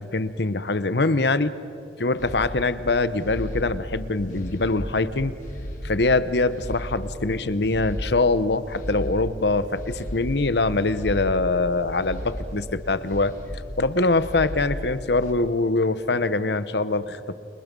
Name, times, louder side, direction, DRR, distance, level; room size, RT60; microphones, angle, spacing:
voice 1, 0.0-1.5 2.0-5.3 5.8-13.4 13.8-17.4, left 3 dB, 70° left, 14 dB, 1.0 m, -23 dB
sound 1, 2.2-15.3, equal, 45° left, 3.7 m, -35 dB
29.5 x 29.0 x 5.4 m, 2.6 s
head